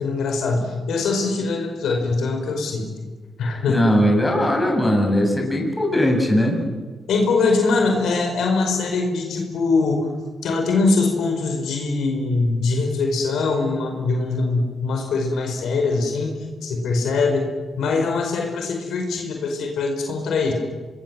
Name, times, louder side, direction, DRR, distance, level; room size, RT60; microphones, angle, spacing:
voice 1, 0.0-2.9 3.4-3.8 7.1-10.1 10.4-17.5 17.8-20.5, left 3 dB, 80° left, 3 dB, 5.2 m, -22 dB
voice 2, 3.7-6.6, equal, 15° left, 2 dB, 7.2 m, -19 dB
25.5 x 20.5 x 7.8 m, 1.4 s
cardioid pair, 65°, 0 cm